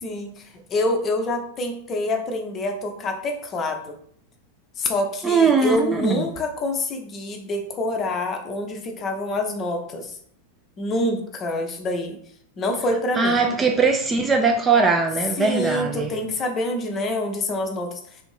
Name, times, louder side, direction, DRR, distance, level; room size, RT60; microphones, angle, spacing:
voice 1, 0.0-4.0 4.8-10.2 10.8-12.2 12.6-13.4 15.3-18.2, left 1 dB, 30° left, 0.6 m, -26 dB
voice 2, 5.2-6.1 13.2-16.1, right 4 dB, 15° right, 0.3 m, -20 dB
3.3 x 2.6 x 3.1 m
figure-of-eight pair, 90°, 0 cm